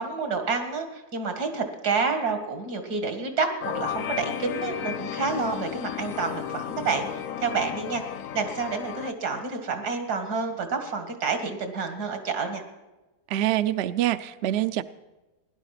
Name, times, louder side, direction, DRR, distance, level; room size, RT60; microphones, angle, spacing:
voice 1, 0.0-7.1 7.4-8.0 8.3-12.6, right 4 dB, 80° right, 7 dB, 2.4 m, -29 dB
sound 1, 3.6-9.1, left 9 dB, 65° left, 0.9 m, -33 dB
voice 2, 13.3-14.8, right 13 dB, 60° right, 12 dB, 0.7 m, -25 dB
16.5 x 11.5 x 5.9 m, 1.1 s
omnidirectional pair, 1.7 m